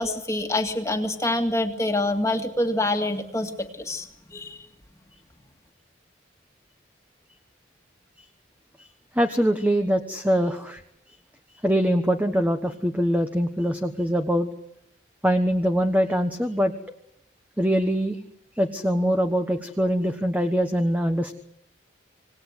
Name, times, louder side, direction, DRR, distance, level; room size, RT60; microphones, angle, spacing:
voice 1, 0.0-4.7, left 1 dB, 15° left, 4 dB, 2.1 m, -26 dB
voice 2, 9.1-10.8 11.6-14.5 15.2-16.7 17.6-18.2 18.5-21.3, equal, 10° right, 6 dB, 1.2 m, -23 dB
27.0 x 19.0 x 8.1 m, 0.77 s
head